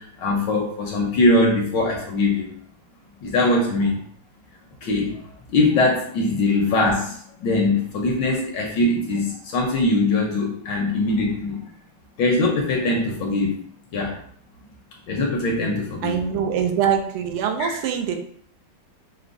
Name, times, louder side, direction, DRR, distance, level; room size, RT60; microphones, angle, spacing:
voice 1, 0.0-2.5 3.2-4.0 4.8-5.2 5.5-11.6 12.2-13.5 13.9-14.1 15.1-16.1 17.6-17.7, left 2 dB, 70° left, 0 dB, 1.2 m, -21 dB
voice 2, 16.0-18.2, right 8 dB, 85° right, 5 dB, 1.5 m, -23 dB
5.8 x 2.1 x 2.5 m, 0.62 s
omnidirectional pair, 2.4 m